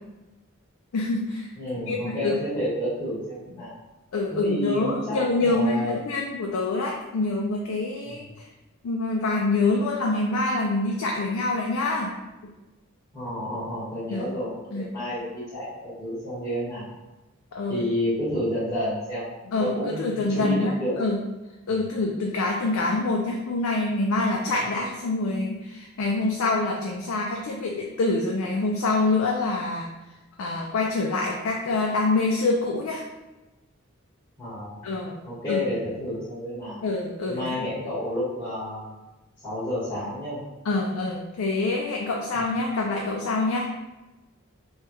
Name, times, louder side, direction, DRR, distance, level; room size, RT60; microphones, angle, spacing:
voice 1, 0.9-1.5 1.9-2.4 4.1-8.4 8.8-12.1 14.1-14.3 14.7-14.9 17.5-17.8 19.5-20.7 21.0-21.2 21.7-29.9 30.4-33.0 34.8-35.2 35.5-35.6 36.8-37.4 40.6-43.7, left 2 dB, 90° left, -1 dB, 0.4 m, -26 dB
voice 2, 1.5-3.7 4.3-5.9 8.0-8.2 13.1-16.9 17.7-21.0 21.7-21.8 34.4-35.0 35.2-36.8 37.2-39.0 39.4-40.4 42.3-42.4, equal, 10° left, -12 dB, 1.2 m, -30 dB
3.3 x 2.3 x 3.0 m, 1.1 s
head